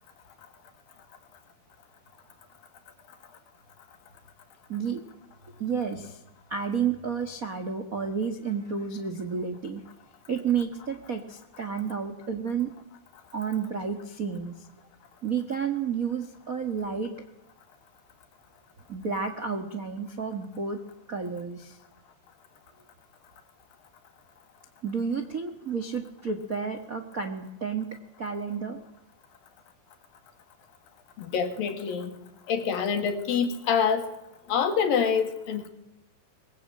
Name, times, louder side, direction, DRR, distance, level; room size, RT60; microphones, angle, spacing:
voice 1, 4.7-5.0 5.5-6.2 6.5-9.8 10.3-12.7 13.3-14.7 15.2-17.1 18.9-20.8 21.1-21.8 24.8-27.9 28.2-28.8, right 6 dB, 55° right, 7 dB, 0.9 m, -31 dB
voice 2, 31.2-32.1 32.5-34.1 34.5-35.7, left 6 dB, 60° left, 8 dB, 3.5 m, -26 dB
23.0 x 21.5 x 8.8 m, 0.88 s
omnidirectional pair, 4.7 m